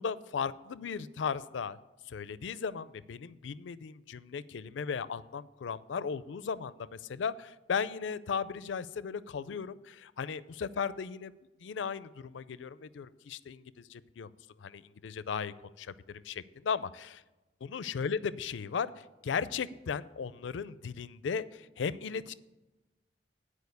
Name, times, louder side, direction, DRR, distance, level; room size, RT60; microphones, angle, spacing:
voice 1, 0.0-1.8 2.1-11.3 11.6-14.3 14.6-17.2 17.6-22.3, left 6 dB, 90° left, 17 dB, 0.4 m, -36 dB
10.5 x 4.8 x 8.0 m, 1.1 s
head